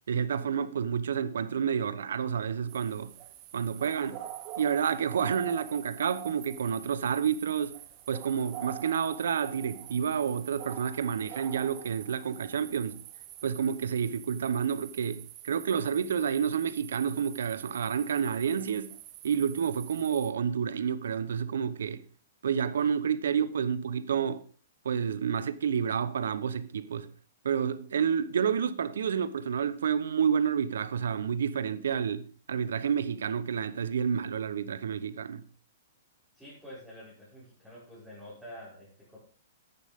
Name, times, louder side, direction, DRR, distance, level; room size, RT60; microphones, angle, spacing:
voice 1, 0.1-3.1 3.5-4.2 4.6-7.8 8.1-13.0 13.4-18.9 19.2-22.0 22.4-24.4 24.8-27.1 27.4-35.4, right 7 dB, 80° right, 0.9 m, -29 dB
sound 1, 2.7-20.3, right 12 dB, 35° right, 1.1 m, -45 dB
voice 2, 36.3-39.2, equal, ahead, 5.6 m, -48 dB
10.5 x 9.4 x 3.6 m
hypercardioid pair, 140°, 0 cm